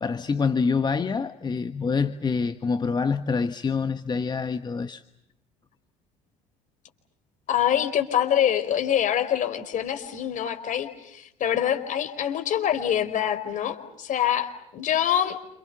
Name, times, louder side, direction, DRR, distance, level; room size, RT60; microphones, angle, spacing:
voice 1, 0.0-5.0, left 5 dB, 25° left, 1.3 m, -26 dB
voice 2, 7.5-15.4, left 10 dB, 50° left, 4.7 m, -25 dB
29.0 x 28.0 x 7.0 m
hypercardioid pair, 70°, 17 cm